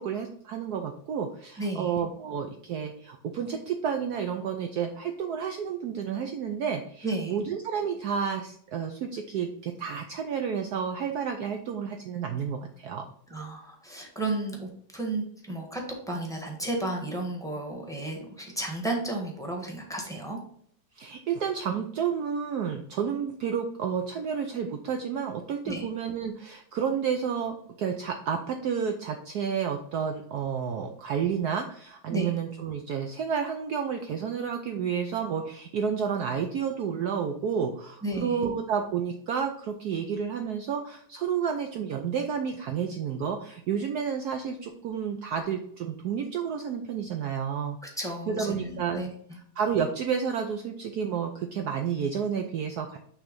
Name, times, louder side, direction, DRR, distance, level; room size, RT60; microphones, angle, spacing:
voice 1, 0.0-13.1 21.0-47.8 48.3-49.0 49.6-53.0, right 7 dB, 75° right, 5 dB, 0.9 m, -30 dB
voice 2, 1.6-2.0 7.0-7.4 13.3-20.4 25.6-25.9 32.1-32.3 38.0-38.4 48.0-49.1, right 2 dB, ahead, 1 dB, 1.0 m, -33 dB
6.1 x 3.4 x 5.1 m, 0.63 s
omnidirectional pair, 2.2 m